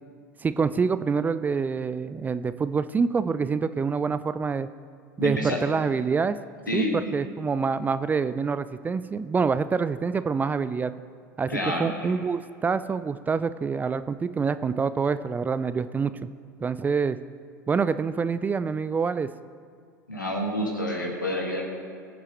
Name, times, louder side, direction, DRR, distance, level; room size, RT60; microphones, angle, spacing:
voice 1, 0.4-4.7 5.2-6.4 6.7-10.9 11.4-16.2 16.6-17.2 17.7-19.3, right 5 dB, 15° right, 13 dB, 0.4 m, -26 dB
voice 2, 5.2-5.6 6.7-6.9 11.5-12.1 20.1-21.7, left 1 dB, 85° left, -1 dB, 2.1 m, -28 dB
22.0 x 7.4 x 3.3 m, 2.2 s
figure-of-eight pair, 80°, 10 cm